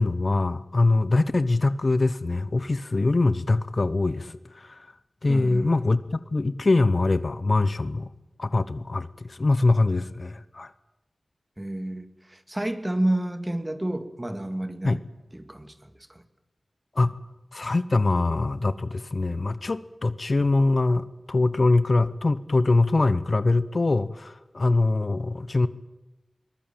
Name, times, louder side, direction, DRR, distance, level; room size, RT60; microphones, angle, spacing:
voice 1, 0.0-4.8 5.2-8.1 8.4-10.7 14.8-15.0 16.9-17.1 17.5-25.7, left 2 dB, 55° left, 0.9 m, -23 dB
voice 2, 5.3-5.7 11.6-15.1 15.3-16.2, right 1 dB, 20° right, 2.1 m, -30 dB
22.0 x 20.0 x 9.0 m
cardioid pair, 45°, 0 cm